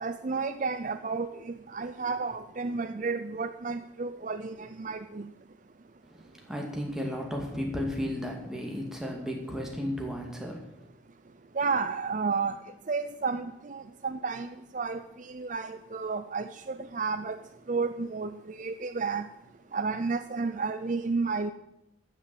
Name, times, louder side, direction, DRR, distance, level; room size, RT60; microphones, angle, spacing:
voice 1, 0.0-5.3 11.6-12.5 12.9-17.4 17.7-19.3 19.7-21.5, right 4 dB, 40° right, 10 dB, 0.5 m, -32 dB
voice 2, 6.1-10.7, equal, 5° right, 0 dB, 2.3 m, -34 dB
14.0 x 6.8 x 7.8 m, 0.84 s
head